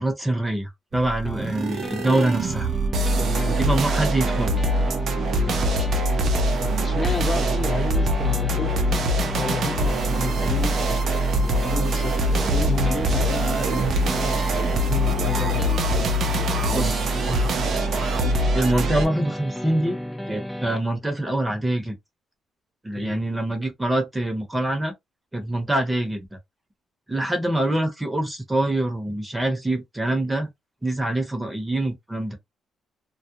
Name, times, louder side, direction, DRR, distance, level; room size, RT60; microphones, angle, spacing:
voice 1, 0.0-2.7 3.6-4.5 16.7-17.0 18.5-20.0 20.3-21.9 22.8-24.9 25.3-26.3 27.1-30.5 30.8-32.4, right 1 dB, 15° right, 0.9 m, -25 dB
sound 1, 0.9-19.1, right 1 dB, 60° right, 0.6 m, -23 dB
sound 2, 1.3-20.8, left 1 dB, 5° left, 0.4 m, -34 dB
voice 2, 3.2-3.6 5.3-5.7 6.6-8.8 9.3-16.0 16.6-16.9 17.3-17.5 23.0-23.2, left 4 dB, 35° left, 1.0 m, -32 dB
2.3 x 2.1 x 2.9 m
cardioid pair, 90°, 0 cm